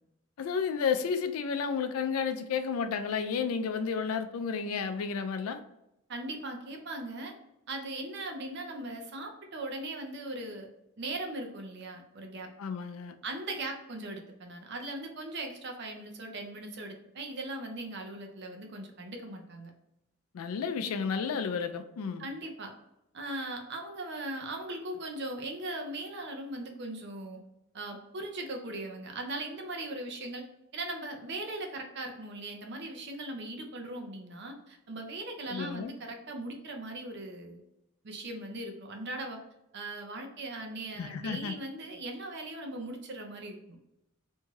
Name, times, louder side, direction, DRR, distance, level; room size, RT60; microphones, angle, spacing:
voice 1, 0.4-5.6 12.6-13.2 20.3-22.2 35.5-35.9 41.0-41.5, left 6 dB, 85° left, 9 dB, 0.4 m, -32 dB
voice 2, 6.1-7.3 7.7-10.7 11.0-12.5 13.2-19.7 22.2-22.7 23.1-27.4 27.7-30.5 30.7-37.6 38.0-39.4 39.7-43.8, right 2 dB, 55° right, 3 dB, 0.5 m, -39 dB
2.6 x 2.3 x 3.1 m, 0.87 s
head